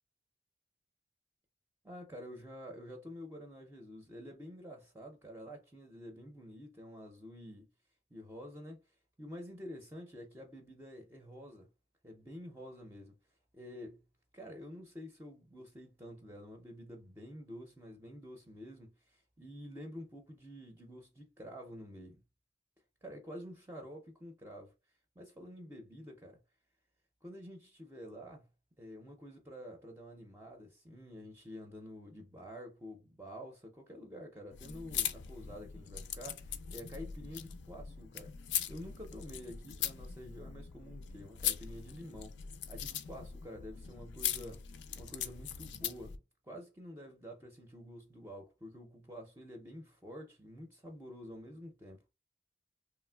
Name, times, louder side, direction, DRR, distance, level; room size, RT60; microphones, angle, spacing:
voice 1, 1.8-7.7 8.1-11.7 12.0-13.2 13.5-14.0 14.3-22.2 23.0-24.7 25.2-26.4 27.2-28.5 28.8-38.3 38.7-42.4 42.7-44.6 45.0-52.0, equal, 15° right, 0.4 m, -49 dB
sound 1, 34.5-46.2, left 9 dB, 80° left, 0.4 m, -40 dB
3.1 x 2.4 x 2.2 m
head